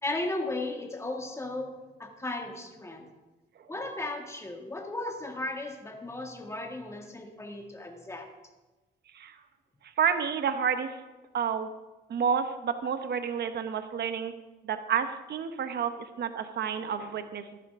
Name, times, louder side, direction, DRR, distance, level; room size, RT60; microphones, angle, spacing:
voice 1, 0.0-3.1 3.7-8.3, left 2 dB, 15° left, 2 dB, 2.1 m, -35 dB
voice 2, 9.8-11.0 11.3-11.7 12.1-14.3 14.6-17.6, right 7 dB, 55° right, 9 dB, 1.0 m, -30 dB
14.0 x 11.5 x 3.7 m, 1.1 s
cardioid pair, 90°, 20 cm